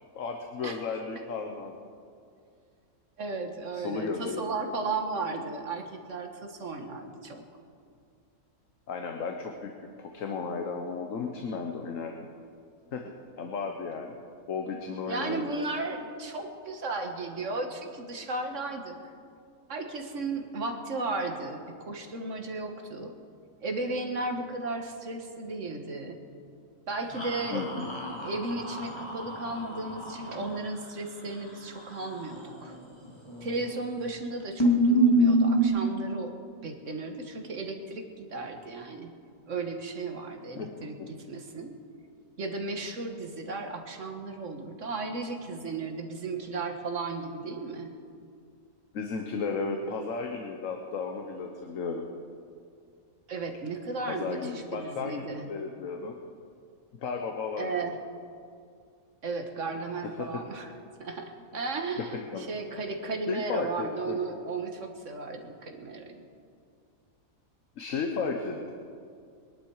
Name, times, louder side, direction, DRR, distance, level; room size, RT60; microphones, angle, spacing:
voice 1, 0.1-1.7 3.7-4.4 8.9-9.7 10.0-12.1 12.9-13.1 13.4-14.2 14.5-15.4 27.5-28.0 40.5-40.7 41.0-41.1 48.9-52.0 54.1-56.1 57.0-57.9 60.2-60.4 62.0-62.5 63.3-64.2 67.8-68.7, left 4 dB, 65° left, 3 dB, 1.4 m, -34 dB
voice 2, 3.2-7.4 15.1-19.0 19.7-23.1 23.6-26.2 26.9-32.8 33.4-36.3 36.6-39.1 39.5-41.8 42.4-47.9 53.3-55.5 57.6-58.0 59.2-60.7 61.0-66.3, right 3 dB, 60° right, 4 dB, 1.7 m, -35 dB
sound 1, 27.2-30.6 33.3-33.8 34.1-34.2 34.6-35.7, right 1 dB, 20° left, 2.4 m, -26 dB
22.0 x 11.0 x 4.8 m, 2.3 s
omnidirectional pair, 1.5 m